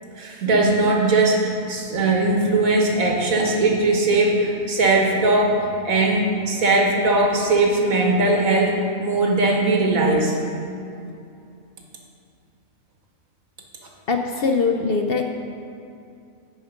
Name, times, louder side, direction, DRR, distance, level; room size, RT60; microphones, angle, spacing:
voice 1, 0.2-10.4, right 2 dB, 85° right, 0 dB, 1.8 m, -19 dB
voice 2, 14.1-15.2, left 4 dB, 55° left, 3 dB, 0.7 m, -21 dB
10.0 x 7.8 x 5.1 m, 2.5 s
omnidirectional pair, 1.4 m